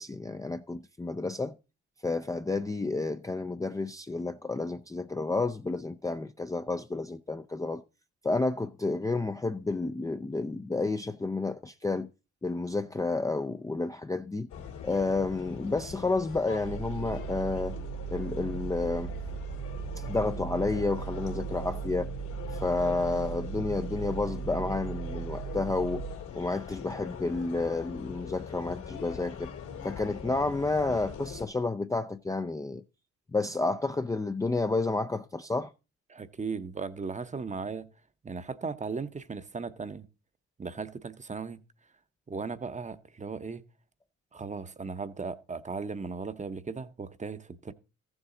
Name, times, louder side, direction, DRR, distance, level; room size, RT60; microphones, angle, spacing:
voice 1, 0.0-1.6 2.0-7.8 8.2-12.1 12.4-14.5 14.8-17.8 18.1-19.1 20.0-22.1 22.6-26.0 26.3-29.5 29.8-32.8 33.3-35.7, left 3 dB, 10° left, 0.4 m, -30 dB
sound 1, 14.5-31.5, left 7 dB, 75° left, 2.5 m, -42 dB
sound 2, 16.6-26.2, right 11 dB, 60° right, 0.6 m, -38 dB
voice 2, 36.1-37.9 38.2-40.1 40.6-41.6 42.3-43.6 44.3-47.7, right 4 dB, 25° right, 0.8 m, -37 dB
14.0 x 7.1 x 3.8 m
cardioid pair, 90°, 30 cm